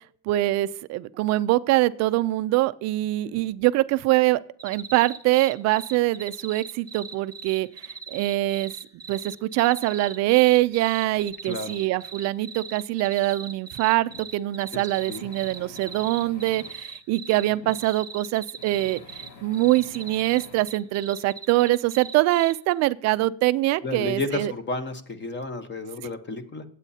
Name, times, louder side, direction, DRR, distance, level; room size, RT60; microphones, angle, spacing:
voice 1, 0.3-7.7 8.1-8.7 9.1-24.5, right 17 dB, 35° right, 0.4 m, -23 dB
sound 1, 4.6-22.7, right 5 dB, 5° right, 1.1 m, -39 dB
voice 2, 11.4-11.8 14.7-14.8 15.1-15.3 23.8-26.6, left 2 dB, 20° left, 1.1 m, -32 dB
sound 2, 14.1-14.3 14.9-16.8 17.5-17.8 18.6-20.7, left 3 dB, 85° left, 2.2 m, -46 dB
23.5 x 8.3 x 2.8 m
supercardioid pair, 110°, 50 cm